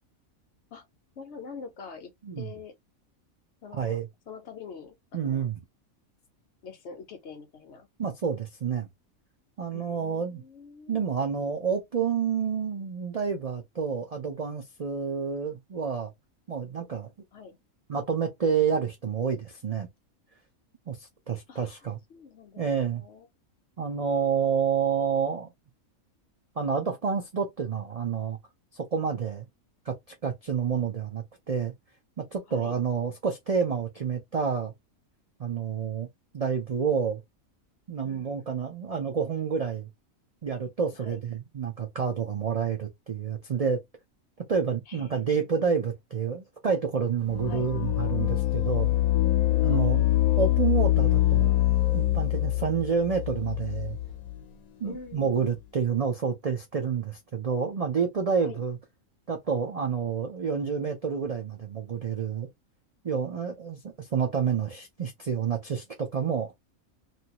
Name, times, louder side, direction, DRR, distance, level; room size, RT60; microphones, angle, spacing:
voice 1, 1.2-2.8 3.6-4.0 4.3-5.5 6.6-7.9 9.7-11.0 17.3-17.6 21.5-23.3 32.5-32.7 38.0-38.6 40.9-41.2 44.9-45.7 47.5-47.7 49.6-50.0 54.9-55.5 58.4-58.6, left 5 dB, 60° left, 0.9 m, -45 dB
voice 2, 3.7-4.1 5.1-5.5 8.0-8.9 9.6-10.4 10.9-16.1 16.5-17.1 17.9-19.9 20.9-22.0 22.6-23.0 23.8-25.5 26.6-28.4 28.7-29.5 29.9-30.0 30.2-31.7 32.2-34.7 35.4-36.1 36.3-37.2 37.9-39.9 40.4-43.8 44.5-48.9 49.6-50.0 50.4-51.5 51.9-54.0 54.8-58.8 59.3-62.5 63.0-66.5, right 6 dB, 75° right, 0.3 m, -29 dB
sound 1, 47.3-54.4, left 14 dB, 80° left, 1.1 m, -24 dB
2.8 x 2.6 x 2.9 m
omnidirectional pair, 1.5 m